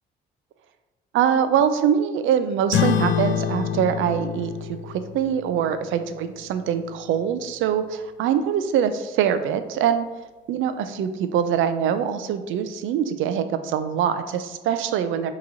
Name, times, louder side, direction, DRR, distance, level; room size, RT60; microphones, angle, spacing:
voice 1, 1.1-10.1 10.5-15.3, right 8 dB, 80° right, 10 dB, 0.4 m, -23 dB
sound 1, 2.7-7.6, left 9 dB, 70° left, 0.4 m, -28 dB
5.4 x 2.9 x 2.6 m, 1.1 s
cardioid pair, 90°, 20 cm